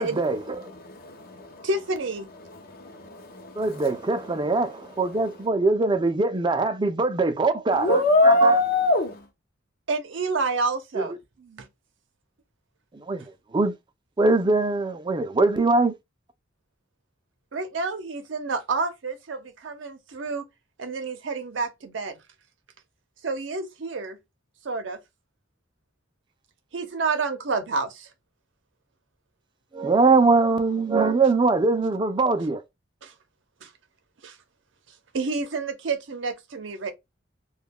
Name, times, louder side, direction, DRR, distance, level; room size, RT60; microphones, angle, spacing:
voice 1, 0.0-0.7 3.6-8.6 10.9-11.1 12.9-13.2 13.5-13.7 14.2-15.9 29.7-32.6, right 3 dB, 25° right, 0.4 m, -22 dB
voice 2, 0.6-1.7 2.4-5.2 7.7-9.3, left 2 dB, 55° left, 0.6 m, -24 dB
voice 3, 1.6-2.3 9.9-11.7 17.5-20.5 20.8-22.2 23.2-24.2 24.6-25.0 26.7-28.1 33.0-33.1 33.6-33.7 34.2-34.4 35.1-36.9, right 3 dB, 80° right, 0.6 m, -29 dB
2.3 x 2.2 x 3.5 m
head